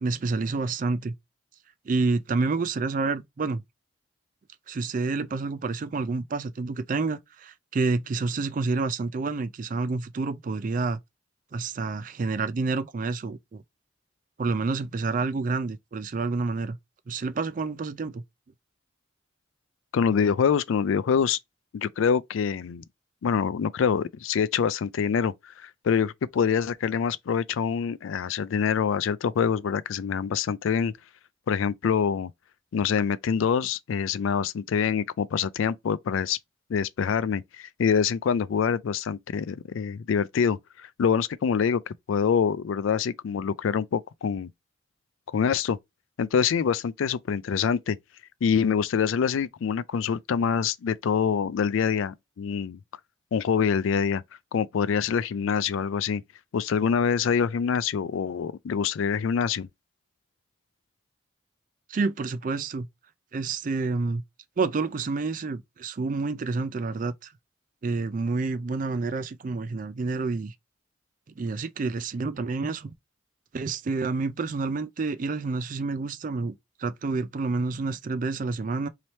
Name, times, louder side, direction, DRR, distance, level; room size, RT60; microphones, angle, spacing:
voice 1, 0.0-1.1 1.9-3.6 4.7-11.0 11.5-13.6 14.4-16.8 17.1-18.2 61.9-62.9 63.3-64.2 64.6-67.3 67.8-70.5 71.4-72.9 73.5-78.9, right 3 dB, 40° right, 0.4 m, -28 dB
voice 2, 19.9-21.4 21.7-22.8 23.2-30.9 31.5-32.3 32.7-36.4 36.7-44.5 45.3-45.8 46.2-48.0 48.4-52.8 53.3-54.2 54.5-56.2 56.5-59.7, left 7 dB, 75° left, 0.3 m, -25 dB
3.2 x 2.8 x 4.1 m
head